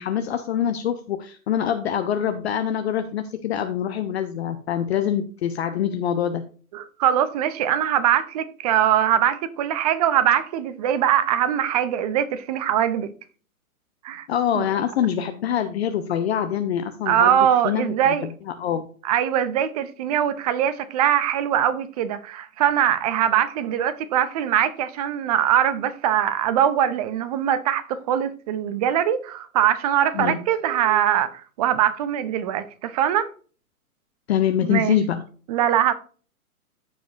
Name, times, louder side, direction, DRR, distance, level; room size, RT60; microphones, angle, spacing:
voice 1, 0.0-6.4 14.3-17.4 17.6-18.9 30.1-30.4 34.3-35.2, left 9 dB, 45° left, 0.8 m, -25 dB
voice 2, 6.7-13.1 14.0-14.3 14.5-14.6 17.1-18.3 19.0-33.3 34.6-35.0 35.5-35.9, right 10 dB, 25° right, 0.6 m, -22 dB
14.5 x 5.0 x 2.6 m
figure-of-eight pair, 125°, 45 cm